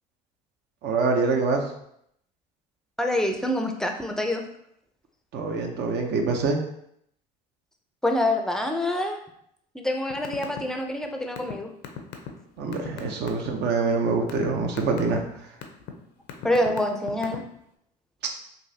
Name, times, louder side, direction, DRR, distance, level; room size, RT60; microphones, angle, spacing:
voice 1, 0.8-1.6 5.3-6.6 12.6-15.2, right 4 dB, 60° right, 2 dB, 0.8 m, -25 dB
voice 2, 3.0-4.4 8.0-9.2 9.7-11.7 16.4-17.5, left 1 dB, 5° left, 3 dB, 0.5 m, -26 dB
sound 1, 10.1-10.6 10.9-13.5 14.0-14.5 14.8-15.2 15.6-15.9 16.3-17.6, left 10 dB, 65° left, 0.6 m, -36 dB
3.9 x 2.6 x 2.7 m, 0.72 s
hypercardioid pair, 75°, 20 cm